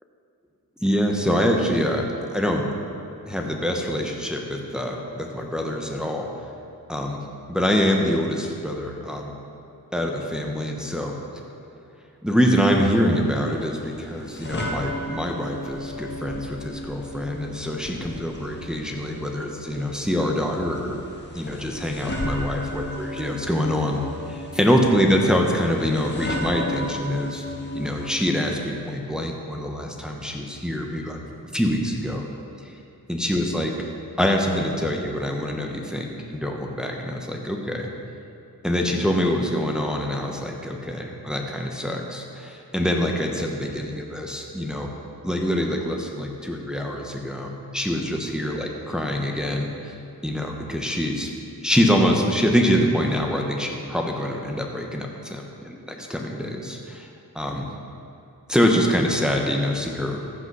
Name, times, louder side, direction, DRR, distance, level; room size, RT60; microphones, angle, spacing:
voice 1, 0.8-2.7 3.3-6.4 6.9-7.2 7.5-9.3 9.9-11.1 12.2-21.0 21.3-24.0 24.3-27.4 27.7-31.2 31.5-32.2 32.6-32.8 33.1-33.7 34.2-37.9 38.6-44.9 45.2-49.9 50.2-51.3 51.6-57.1 57.3-57.7 58.5-60.2, equal, ahead, 1 dB, 1.1 m, -25 dB
sound 1, 12.8-28.1, left 1 dB, 30° left, 1.6 m, -35 dB
14.0 x 6.1 x 5.5 m, 2.8 s
wide cardioid pair, 85°, 37 cm